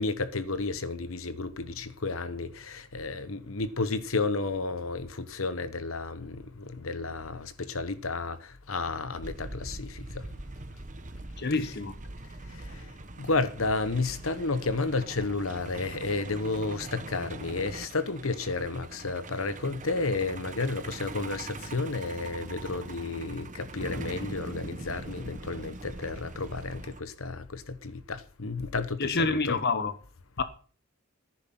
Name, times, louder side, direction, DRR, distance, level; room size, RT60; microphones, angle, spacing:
voice 1, 0.0-10.3 12.5-29.6, left 3 dB, 75° left, 1.1 m, -32 dB
Truck, 9.2-27.0, right 2 dB, 40° right, 1.1 m, -42 dB
voice 2, 11.4-11.9 29.0-29.9 30.4-30.5, left 3 dB, 55° left, 1.0 m, -27 dB
14.0 x 10.5 x 5.9 m
head